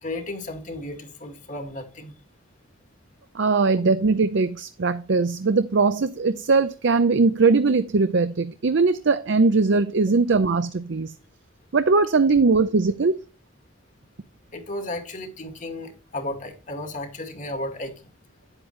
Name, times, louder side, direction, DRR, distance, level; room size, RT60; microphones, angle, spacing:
voice 1, 0.0-2.1 14.5-17.9, left 1 dB, 40° left, 1.9 m, -34 dB
voice 2, 3.3-11.1 11.7-13.2, right 4 dB, 65° right, 0.6 m, -20 dB
9.8 x 8.2 x 3.2 m
head